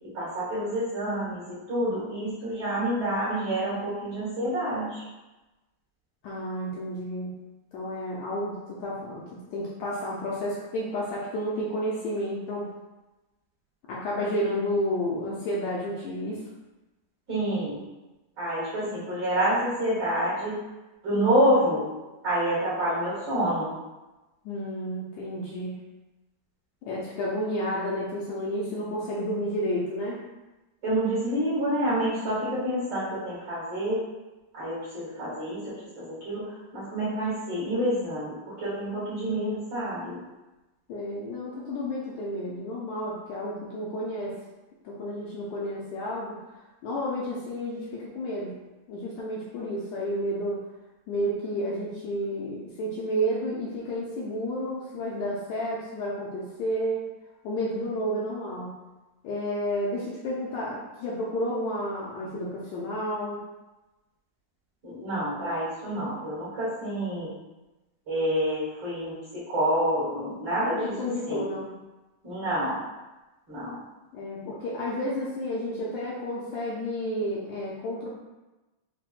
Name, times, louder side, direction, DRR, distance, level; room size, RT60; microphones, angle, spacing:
voice 1, 0.0-5.0 17.3-17.8 18.4-20.6 21.0-21.8 22.2-23.7 30.8-34.0 34.5-36.4 36.7-40.2 64.8-67.3 68.1-70.9 71.3-71.4 72.2-72.8 73.5-73.8, right 1 dB, 50° right, -10 dB, 1.4 m, -28 dB
voice 2, 6.2-7.4 7.7-12.7 13.9-16.4 18.8-19.1 24.4-25.8 26.8-30.2 40.9-44.4 44.8-46.4 46.8-48.6 48.9-50.6 51.1-57.0 57.4-58.8 59.2-63.4 70.7-71.7 74.1-78.1, equal, 80° left, -5 dB, 1.7 m, -31 dB
5.7 x 2.2 x 2.4 m, 1.1 s
omnidirectional pair, 3.6 m